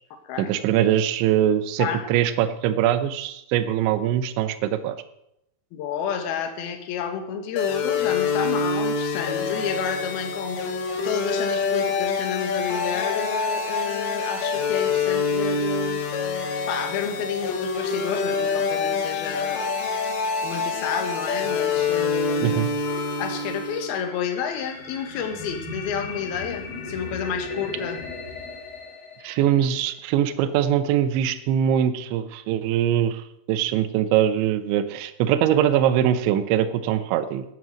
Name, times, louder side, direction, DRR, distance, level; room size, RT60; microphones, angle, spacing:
voice 1, 0.4-5.0 22.4-22.7 29.2-37.4, right 10 dB, 80° right, 11 dB, 3.1 m, -22 dB
voice 2, 5.7-10.7 11.0-16.0 16.7-19.8 20.4-22.6 23.2-28.0, left 7 dB, 65° left, 5 dB, 3.0 m, -30 dB
sound 1, 7.6-24.0, left 4 dB, 85° left, 4.3 m, -26 dB
sound 2, 22.8-29.9, left 3 dB, 30° left, 4.2 m, -37 dB
13.0 x 9.4 x 6.3 m, 0.81 s
omnidirectional pair, 5.5 m